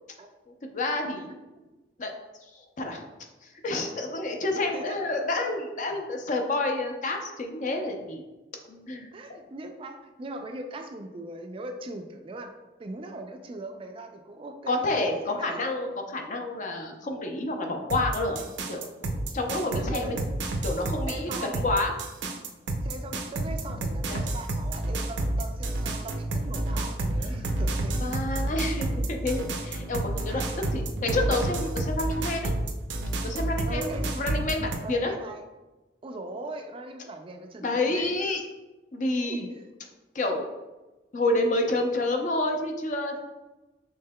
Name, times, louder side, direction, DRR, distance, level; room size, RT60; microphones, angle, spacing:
voice 1, 0.7-1.4 2.0-2.1 2.5-3.0 3.4-8.2 8.7-9.4 14.7-18.4 18.7-20.1 20.6-21.9 24.1-24.2 27.2-27.4 28.0-30.4 30.7-32.5 33.2-35.1 37.6-38.4 38.9-39.5 40.1-40.5 41.1-43.2, left 2 dB, 45° left, 3 dB, 0.5 m, -29 dB
voice 2, 4.6-5.0 9.1-12.5 12.8-15.7 19.7-20.3 21.1-21.6 22.8-28.1 30.3-30.6 33.7-34.1 34.8-35.4 36.0-38.1 39.2-39.7, right 2 dB, 30° right, 5 dB, 0.3 m, -40 dB
sound 1, 17.9-34.8, right 1 dB, 80° right, 0.5 m, -30 dB
5.4 x 3.6 x 2.2 m, 1.1 s
head